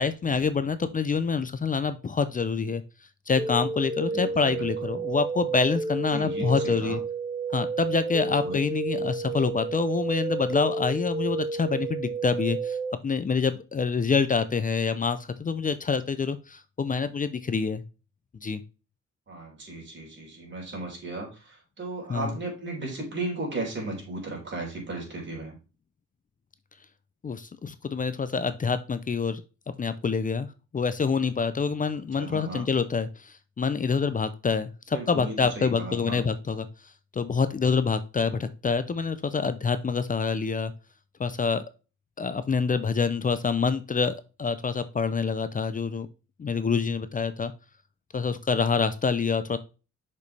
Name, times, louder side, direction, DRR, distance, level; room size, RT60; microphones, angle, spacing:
voice 1, 0.0-2.8 3.3-7.0 7.5-12.8 13.0-17.8 18.4-18.6 22.1-22.3 27.2-29.4 29.8-30.5 30.7-33.1 33.6-36.7 37.1-40.7 41.2-41.6 42.2-46.1 46.4-47.5 48.1-49.6, left 5 dB, 25° left, 12 dB, 0.6 m, -26 dB
sound 1, 3.4-12.9, right 4 dB, 20° right, 0.8 m, -31 dB
voice 2, 4.1-4.7 6.1-7.0 8.3-8.6 19.3-25.6 32.2-32.7 34.9-36.2, right 2 dB, 40° right, 0 dB, 4.0 m, -36 dB
6.7 x 5.2 x 3.3 m, 0.32 s
cardioid pair, 90°, 30 cm